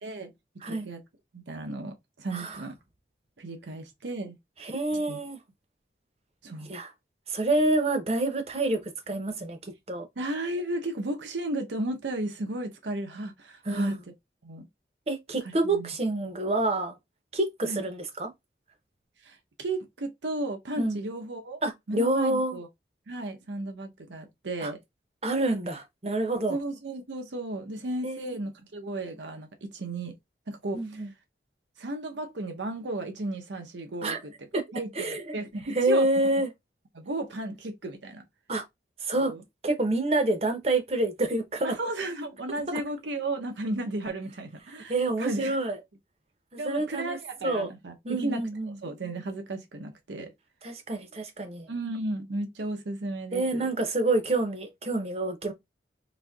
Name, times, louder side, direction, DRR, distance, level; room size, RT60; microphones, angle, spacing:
voice 1, 0.0-1.0 1.3-2.8 3.4-4.4 4.9-5.2 6.4-6.7 10.2-14.0 14.4-14.7 15.6-15.9 17.6-17.9 19.2-21.6 21.9-22.7 23.1-24.8 26.5-30.2 30.5-31.0 31.8-34.3 34.7-36.1 36.9-38.2 39.1-39.4 41.6-45.6 46.6-48.4 48.8-50.3 51.7-53.7, right 2 dB, 90° right, 0.8 m, -34 dB
voice 2, 4.6-5.4 6.7-6.9 7.3-10.1 13.6-14.0 15.1-17.0 17.3-18.3 20.8-21.0 21.6-22.6 24.6-24.7 25.2-26.6 28.0-28.4 30.7-31.1 34.0-34.2 34.5-34.6 35.0-35.4 35.7-36.5 38.5-38.6 39.0-39.3 39.6-41.8 44.9-45.8 46.5-47.2 47.4-47.7 48.0-48.8 50.6-51.7 53.3-55.5, right 2 dB, 35° right, 0.7 m, -27 dB
4.2 x 2.7 x 2.3 m
head